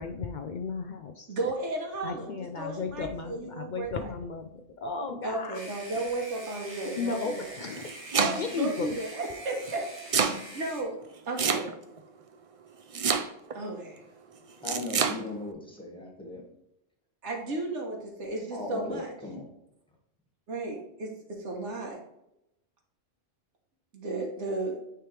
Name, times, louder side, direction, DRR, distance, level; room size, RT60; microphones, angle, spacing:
voice 1, 0.0-1.4 2.0-5.6 6.8-7.9 8.3-9.0, left 4 dB, 60° left, 5 dB, 0.5 m, -34 dB
voice 2, 1.3-2.3 2.6-4.1 5.2-7.5 8.1-10.1 10.5-11.0 11.3-11.7 13.5-14.0 17.2-19.1 20.5-22.0 23.9-24.8, right 2 dB, 90° right, 0 dB, 1.5 m, -34 dB
sound 1, 5.5-10.8, right 1 dB, 25° right, 1.4 m, -45 dB
Domestic sounds home sounds, 7.6-8.6 9.7-10.4 11.4-12.0 12.9-13.6 14.6-15.2, right 6 dB, 50° right, 0.4 m, -27 dB
voice 3, 14.6-16.4 18.5-19.5, left 2 dB, 5° left, -2 dB, 1.5 m, -38 dB
9.1 x 3.4 x 3.2 m, 0.85 s
omnidirectional pair, 1.2 m